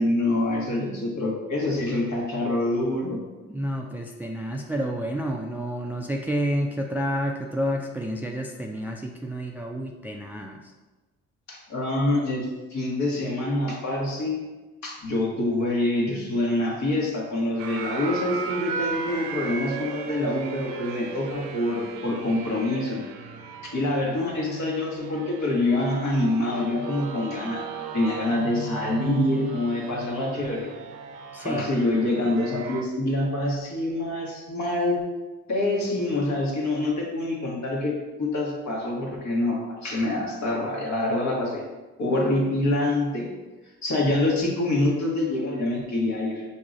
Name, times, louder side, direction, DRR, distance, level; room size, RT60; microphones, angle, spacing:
voice 1, 0.0-3.2 11.5-14.4 14.8-23.0 23.6-27.7 27.9-30.7 31.4-35.0 35.5-41.6 42.0-43.3 43.8-46.4, left 2 dB, 55° left, -2 dB, 1.3 m, -26 dB
voice 2, 3.5-10.6 31.3-31.7, equal, 5° right, 2 dB, 0.4 m, -29 dB
sound 1, 17.6-32.8, right 5 dB, 70° right, 0.5 m, -36 dB
5.9 x 2.8 x 2.5 m, 1.2 s
supercardioid pair, 60°, 34 cm